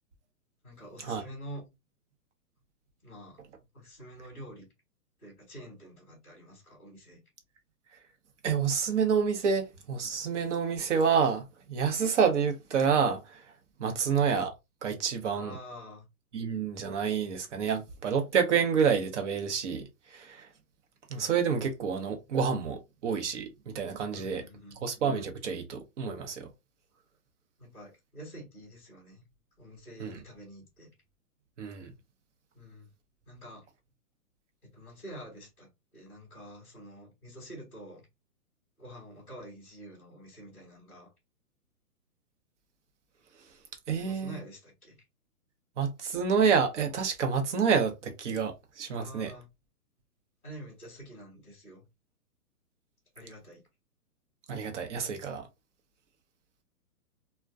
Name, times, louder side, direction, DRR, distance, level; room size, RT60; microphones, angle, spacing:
voice 1, 0.6-1.6 3.0-3.4 3.7-4.7 5.2-7.2 13.9-14.0 15.3-16.1 24.1-24.8 27.6-29.2 29.6-30.9 32.5-32.9 33.3-33.7 34.6-38.1 38.8-41.1 44.0-45.0 48.9-49.5 50.4-51.8 53.1-53.6, equal, 5° right, 0.4 m, -47 dB
voice 2, 8.4-13.4 13.8-14.5 14.8-15.6 16.3-20.5 21.1-24.4 24.8-26.5 30.0-30.2 31.6-31.9 43.9-44.4 45.8-49.3 54.5-55.5, right 6 dB, 50° right, 0.8 m, -28 dB
2.3 x 2.1 x 2.5 m
hypercardioid pair, 150°, 47 cm